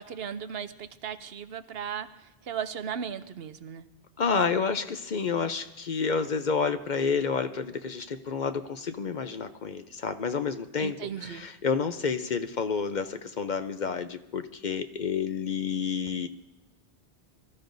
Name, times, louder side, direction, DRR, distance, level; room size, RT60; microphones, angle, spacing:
voice 1, 0.0-3.8 10.8-11.4, right 8 dB, 75° right, 10 dB, 0.9 m, -36 dB
voice 2, 4.2-11.0 11.2-16.3, left 5 dB, 50° left, 9 dB, 0.7 m, -29 dB
24.0 x 14.0 x 2.6 m, 0.96 s
omnidirectional pair, 1.0 m